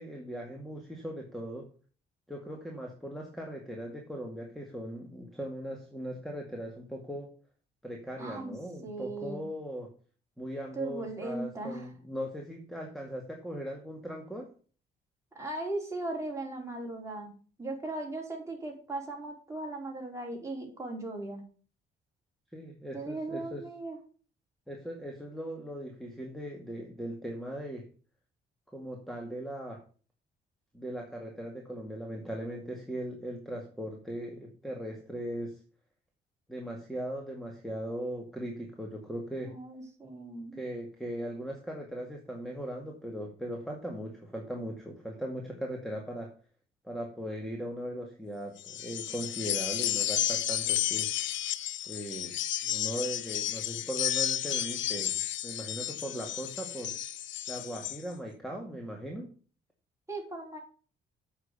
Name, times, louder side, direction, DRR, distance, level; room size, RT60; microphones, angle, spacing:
voice 1, 0.0-1.7 2.3-7.3 7.8-9.9 10.4-14.5 22.5-23.6 24.7-27.9 28.7-29.8 30.7-35.6 36.5-39.6 40.5-46.3 46.8-51.1 51.8-56.9 57.5-59.3, equal, ahead, 1 dB, 2.2 m, -39 dB
voice 2, 8.2-8.5 8.8-9.4 10.7-11.9 15.3-17.3 17.6-21.4 22.9-24.0 39.4-40.6 60.1-60.6, right 2 dB, 15° right, -1 dB, 4.8 m, -38 dB
sound 1, 48.6-58.0, left 12 dB, 70° left, 0.6 m, -32 dB
8.2 x 6.2 x 7.0 m, 0.39 s
cardioid pair, 90°, 20 cm